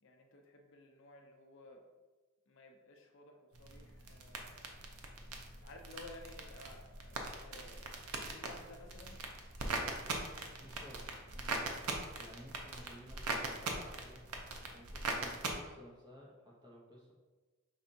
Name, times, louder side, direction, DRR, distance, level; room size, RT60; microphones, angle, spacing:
voice 1, 0.0-1.9 2.5-4.8 5.6-9.2 9.5-10.3, left 2 dB, 60° left, 2 dB, 0.6 m, -56 dB
sound 1, 3.5-15.5, right 3 dB, 85° right, 0.6 m, -41 dB
voice 2, 10.6-11.0 11.3-11.8 12.2-14.2 14.7-17.1, equal, 20° right, -3 dB, 0.9 m, -55 dB
5.4 x 3.4 x 2.7 m, 1.2 s
head